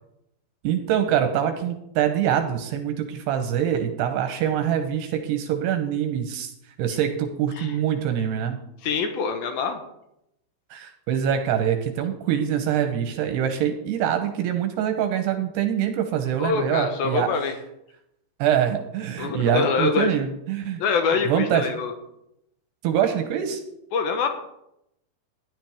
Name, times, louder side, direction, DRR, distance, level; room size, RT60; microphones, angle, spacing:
voice 1, 0.6-6.5 6.8-8.6 10.7-17.3 18.4-20.8 21.2-21.7 22.8-23.6, right 9 dB, 75° right, 6 dB, 2.6 m, -24 dB
voice 2, 8.8-9.8 16.4-17.6 19.2-20.2 20.8-21.9 23.9-24.3, left 5 dB, 80° left, 6 dB, 2.2 m, -24 dB
15.0 x 11.0 x 3.5 m, 0.81 s
omnidirectional pair, 5.5 m